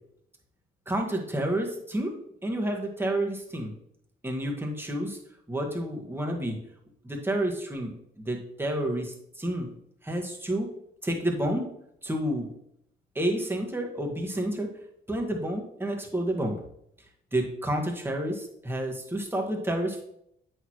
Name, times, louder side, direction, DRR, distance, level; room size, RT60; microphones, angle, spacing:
voice 1, 0.9-2.1 2.4-3.7 4.2-5.2 5.5-6.5 7.0-9.7 10.0-10.7 11.0-11.7 12.0-12.5 13.1-14.7 15.1-16.6 17.3-20.0, right 1 dB, 10° right, 1 dB, 1.6 m, -30 dB
7.9 x 6.4 x 3.0 m, 0.74 s
cardioid pair, 90°, 20 cm